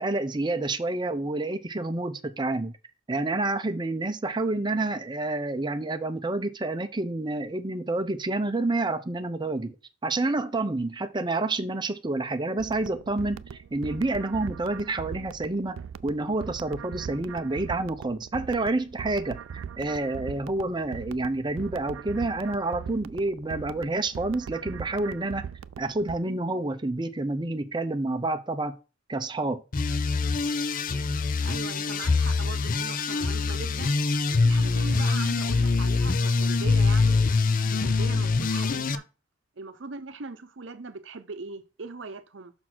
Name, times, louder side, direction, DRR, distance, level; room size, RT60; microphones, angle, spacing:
voice 1, 0.0-2.7 3.1-9.7 10.0-13.4 13.7-15.8 16.0-25.4 25.8-28.7 29.1-29.6, right 2 dB, 25° right, 0.6 m, -28 dB
sound 1, 12.6-26.2, right 7 dB, 90° right, 0.3 m, -40 dB
sound 2, 29.7-39.0, left 4 dB, 45° left, 0.5 m, -24 dB
voice 2, 31.4-34.0 34.3-37.2 37.7-39.0 39.6-42.5, right 4 dB, 65° right, 0.8 m, -40 dB
6.1 x 4.0 x 6.0 m
head